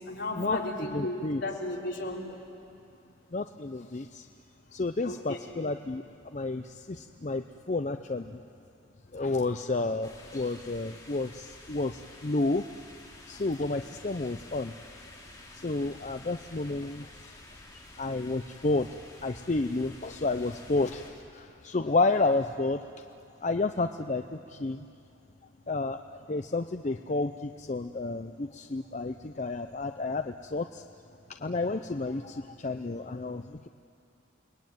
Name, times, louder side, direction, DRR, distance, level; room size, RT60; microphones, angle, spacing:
voice 1, 0.0-2.4 5.0-5.4, left 2 dB, 65° left, -2 dB, 4.2 m, -34 dB
voice 2, 0.9-1.4 3.3-4.3 4.7-8.4 9.1-12.7 13.3-14.7 15.5-17.3 18.0-18.9 19.2-22.8 23.4-24.8 25.7-30.8 31.4-33.7, left 3 dB, 35° left, 7 dB, 0.6 m, -31 dB
sound 1, 10.0-21.1, left 2 dB, 15° left, 3.8 m, -50 dB
29.5 x 21.0 x 9.3 m, 2.5 s
head